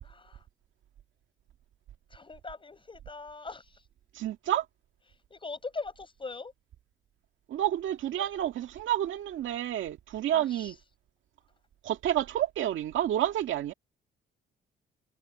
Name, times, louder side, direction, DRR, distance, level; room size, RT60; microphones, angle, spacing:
voice 1, 0.0-0.5 2.1-3.9 5.3-6.5 10.3-10.8, left 4 dB, 25° left, 5.7 m, -41 dB
voice 2, 4.1-4.7 7.5-10.7 11.8-13.7, right 12 dB, 75° right, 2.0 m, -29 dB
cardioid pair, 90°, 20 cm